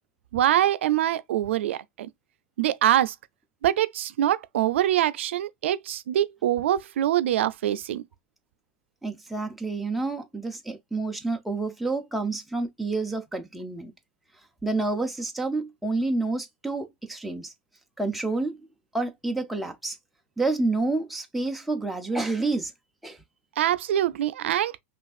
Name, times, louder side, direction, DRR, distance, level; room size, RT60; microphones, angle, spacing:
voice 1, 0.3-2.1 2.6-3.1 3.6-8.0 23.6-24.7, right 12 dB, 80° right, 0.5 m, -24 dB
voice 2, 9.0-13.9 14.6-17.5 18.0-18.6 18.9-20.0 20.4-22.7 23.0-23.2, right 3 dB, ahead, 0.5 m, -29 dB
5.7 x 2.4 x 2.4 m
supercardioid pair, 165°, 6 cm